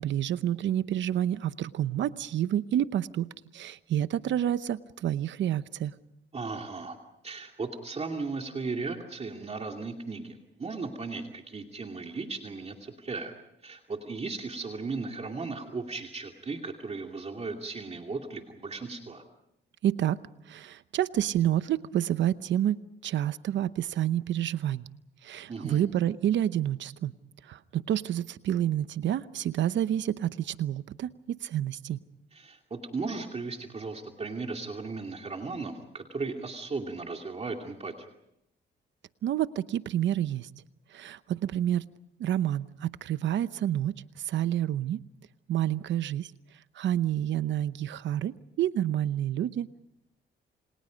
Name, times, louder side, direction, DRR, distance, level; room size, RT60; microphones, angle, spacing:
voice 1, 0.0-3.3 3.5-5.9 19.8-24.9 25.2-27.1 27.4-32.0 39.2-40.5 40.9-41.9 42.2-45.0 45.5-46.3 46.7-49.8, right 11 dB, 75° right, 14 dB, 0.8 m, -29 dB
voice 2, 6.3-7.0 7.2-13.3 13.6-19.2 25.5-25.8 32.3-38.1, right 4 dB, 35° right, 3 dB, 2.6 m, -36 dB
29.5 x 27.5 x 5.2 m, 0.80 s
cardioid pair, 95°, 19 cm